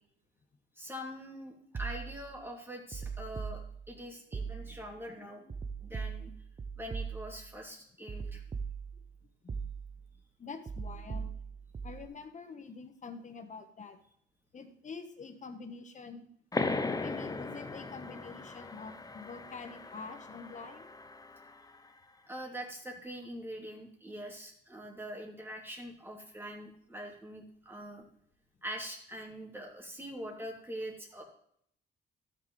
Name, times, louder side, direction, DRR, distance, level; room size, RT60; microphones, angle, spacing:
voice 1, 0.8-5.4 5.8-6.3 6.8-8.4 22.3-28.0 28.6-31.2, equal, 10° right, -1 dB, 2.8 m, -43 dB
sound 1, 1.7-2.4 2.9-4.0 4.3-5.0 5.5-7.5 8.1-9.1 9.5-10.1 10.7-12.1, right 5 dB, 25° right, 0.6 m, -40 dB
voice 2, 10.4-11.3 11.8-14.0 14.5-16.3 17.0-20.9, left 4 dB, 40° left, 7 dB, 1.3 m, -46 dB
sound 2, 16.5-21.8, left 3 dB, 20° left, 0.6 m, -38 dB
13.5 x 6.6 x 3.3 m, 0.67 s
cardioid pair, 90°, 20 cm